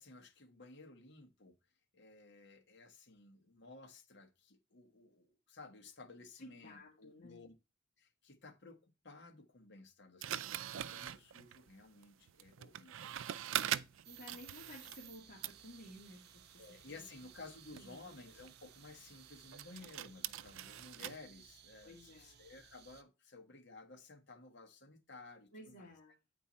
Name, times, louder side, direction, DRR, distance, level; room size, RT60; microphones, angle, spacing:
voice 1, 0.0-1.6 1.9-7.5 8.0-13.1 13.6-13.9 16.6-25.9, left 3 dB, 60° left, 1.2 m, -56 dB
voice 2, 6.4-7.4 14.1-16.8 17.7-18.1 21.8-22.4 25.5-26.1, left 1 dB, 40° left, 2.0 m, -55 dB
sound 1, 10.2-15.1 15.4-21.2, right 11 dB, 75° right, 0.4 m, -44 dB
sound 2, 14.0-23.0, right 9 dB, 55° right, 0.7 m, -60 dB
8.6 x 4.5 x 4.1 m
head